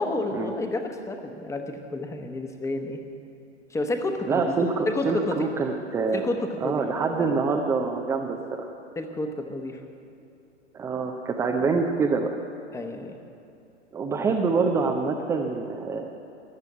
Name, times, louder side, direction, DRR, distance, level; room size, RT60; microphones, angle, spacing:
voice 1, 0.0-3.0 3.7-4.4 4.9-5.4 6.1-7.3 9.0-9.8 12.7-13.2, left 2 dB, 10° left, 5 dB, 1.0 m, -30 dB
voice 2, 4.3-6.3 6.6-8.7 10.7-12.3 13.9-16.1, right 4 dB, 10° right, 2 dB, 0.5 m, -26 dB
14.0 x 8.2 x 9.1 m, 2.7 s
figure-of-eight pair, 110°, 36 cm